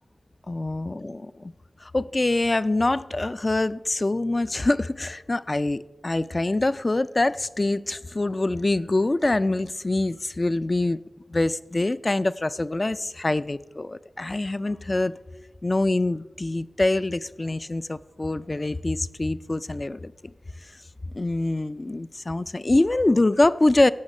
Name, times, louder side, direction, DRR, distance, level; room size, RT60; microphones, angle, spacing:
voice 1, 0.5-1.5 1.9-11.0 11.3-15.1 15.6-20.1 21.1-23.9, left 2 dB, 35° left, 0.4 m, -24 dB
16.0 x 5.8 x 5.4 m
wide cardioid pair, 60°, 0 cm